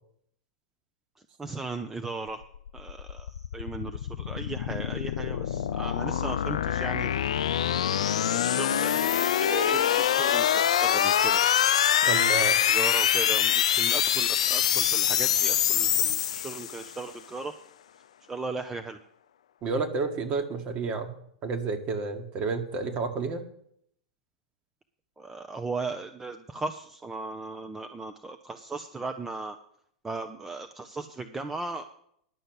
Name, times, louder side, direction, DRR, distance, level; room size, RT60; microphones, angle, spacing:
voice 1, 1.4-2.4 2.7-7.2 8.2-11.4 12.0-17.5 18.3-19.0 25.2-29.6 30.0-31.8, right 3 dB, 10° right, 7 dB, 0.6 m, -37 dB
sound 1, 2.4-17.0, left 10 dB, 60° left, 0.4 m, -25 dB
voice 2, 12.1-12.6 19.6-21.1 21.4-23.5, right 4 dB, 35° right, 6 dB, 1.7 m, -30 dB
10.5 x 6.5 x 8.1 m, 0.69 s
figure-of-eight pair, 95°, 4 cm